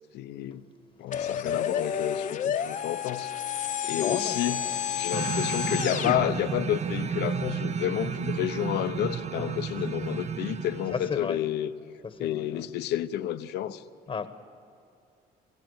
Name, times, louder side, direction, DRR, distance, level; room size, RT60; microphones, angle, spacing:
voice 1, 0.1-0.6 1.0-3.3 3.8-4.6 4.9-11.7 12.2-13.8, left 12 dB, 80° left, 0.9 m, -30 dB
sound 1, 1.1-6.2, left 8 dB, 50° left, 0.9 m, -30 dB
voice 2, 3.9-4.8 9.3-9.6 10.9-11.4 12.0-12.7 14.1-14.3, left 6 dB, 35° left, 1.1 m, -35 dB
sound 2, 5.1-11.3, right 7 dB, 40° right, 0.7 m, -32 dB
26.5 x 16.0 x 8.0 m
cardioid pair, 110°, 17 cm